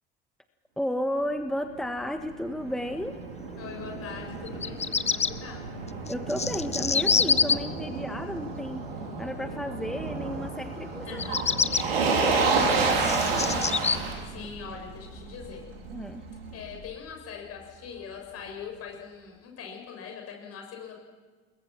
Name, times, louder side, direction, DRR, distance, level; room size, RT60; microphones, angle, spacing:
voice 1, 0.8-3.1 6.1-8.8 9.2-11.2 11.9-13.6 15.9-16.2, equal, ahead, 7 dB, 1.5 m, -33 dB
Motor vehicle (road), 1.7-16.8, right 4 dB, 75° right, 3.0 m, -31 dB
voice 2, 3.6-5.6 11.0-11.6 14.2-15.6 16.5-21.0, left 6 dB, 50° left, 1 dB, 7.2 m, -42 dB
Bird vocalization bird call bird song, 4.5-5.3 6.1-7.5 11.1-11.8 12.5-14.0, left 5 dB, 20° left, 1.0 m, -25 dB
29.5 x 21.0 x 6.1 m, 1.4 s
figure-of-eight pair, 50°, 30 cm